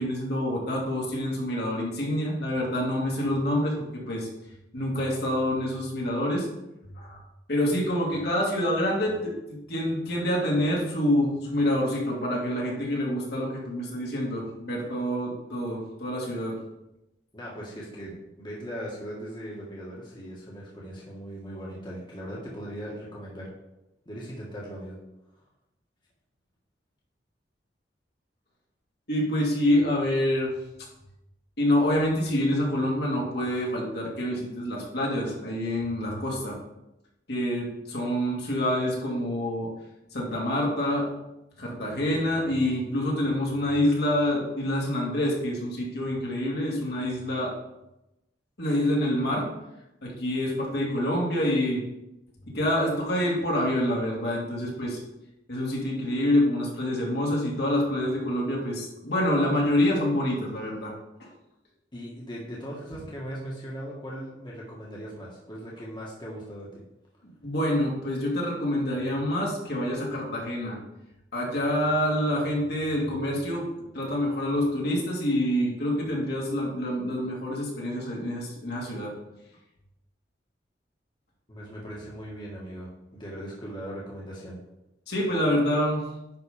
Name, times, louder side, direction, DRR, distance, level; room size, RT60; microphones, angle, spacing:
voice 1, 0.0-3.8 4.1-4.3 4.7-6.5 7.0-7.2 7.5-16.6 29.1-30.5 31.6-36.6 37.3-39.7 40.1-41.1 41.6-47.5 48.6-49.5 50.0-51.8 52.5-55.0 55.5-60.9 61.2-61.3 67.4-70.8 71.3-73.6 73.9-79.1 85.1-86.0, left 1 dB, 65° left, -3 dB, 2.5 m, -27 dB
voice 2, 17.3-23.5 24.0-25.0 61.9-66.8 81.5-84.6, equal, 25° left, -5 dB, 1.7 m, -39 dB
10.0 x 4.1 x 5.1 m, 0.92 s
head